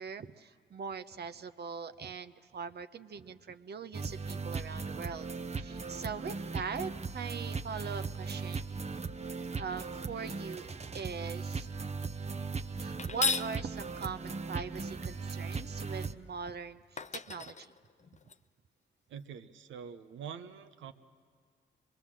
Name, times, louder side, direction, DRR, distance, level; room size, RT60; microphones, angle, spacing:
voice 1, 0.0-5.3 5.6-8.7 9.6-11.7 12.8-17.7, right 6 dB, 60° right, 10 dB, 0.8 m, -41 dB
sound 1, 3.9-16.1, right 4 dB, 35° right, 0.8 m, -38 dB
sound 2, 13.0-13.5 16.5-16.6 17.0-18.3, left 5 dB, 40° left, 0.6 m, -34 dB
voice 2, 19.1-20.9, right 7 dB, 90° right, 9 dB, 0.8 m, -45 dB
25.0 x 21.5 x 7.5 m, 2.1 s
supercardioid pair, 50°, 19 cm